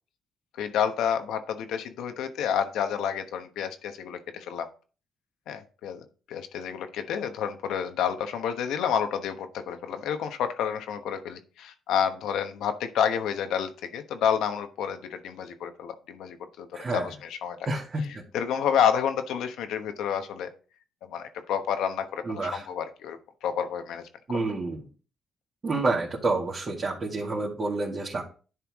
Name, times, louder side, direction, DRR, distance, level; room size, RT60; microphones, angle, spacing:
voice 1, 0.6-4.7 5.5-17.6 18.1-20.5 21.1-24.5, left 8 dB, 85° left, 8 dB, 1.1 m, -29 dB
voice 2, 16.7-17.1 17.7-18.0 22.3-22.6 24.3-24.8 25.6-28.2, right 3 dB, 40° right, -5 dB, 2.1 m, -28 dB
11.0 x 4.6 x 3.6 m, 0.37 s
cardioid pair, 90°, 0 cm